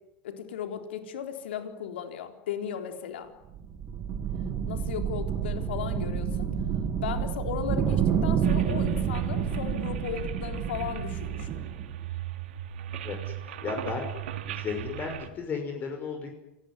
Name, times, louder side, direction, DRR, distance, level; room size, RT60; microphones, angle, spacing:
voice 1, 0.2-3.3 4.7-6.5 7.0-11.7, left 9 dB, 90° left, 6 dB, 3.9 m, -36 dB
sound 1, 3.4-11.9, right 8 dB, 40° right, 5.4 m, -29 dB
sound 2, 8.4-15.3, right 11 dB, 90° right, 2.8 m, -38 dB
voice 2, 13.4-14.1 14.5-16.3, left 5 dB, 30° left, 4 dB, 5.7 m, -34 dB
27.5 x 20.0 x 9.7 m, 0.89 s
supercardioid pair, 130°, 6 cm